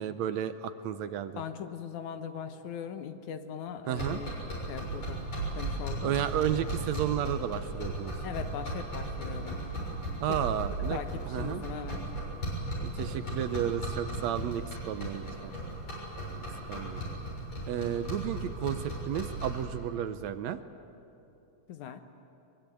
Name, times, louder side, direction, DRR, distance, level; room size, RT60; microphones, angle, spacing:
voice 1, 0.0-1.4 3.9-4.2 6.0-8.2 10.2-11.6 12.8-15.5 16.4-16.5 16.7-17.0 17.7-20.6, right 10 dB, 75° right, 11 dB, 1.9 m, -32 dB
voice 2, 1.3-4.3 4.7-5.3 5.5-6.1 8.2-9.6 10.3-10.4 10.9-12.0 21.7-22.0, left 8 dB, 80° left, 8 dB, 2.5 m, -40 dB
sound 1, 3.9-19.7, right 1 dB, 60° left, 8.1 m, -36 dB
23.5 x 23.0 x 9.2 m, 2.8 s
omnidirectional pair, 3.4 m